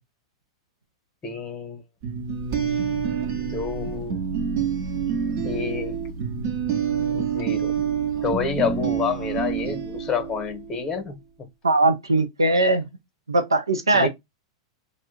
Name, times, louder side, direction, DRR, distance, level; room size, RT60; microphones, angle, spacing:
voice 1, 1.2-1.8 3.3-4.2 5.4-6.0 7.1-7.7 8.2-11.2 13.9-14.1, left 5 dB, 25° left, 0.8 m, -28 dB
sound 1, 2.0-10.7, right 7 dB, 55° right, 0.8 m, -27 dB
voice 2, 11.6-12.8 13.3-14.1, right 2 dB, 85° right, 0.6 m, -20 dB
2.4 x 2.0 x 3.7 m
figure-of-eight pair, 95°, 2 cm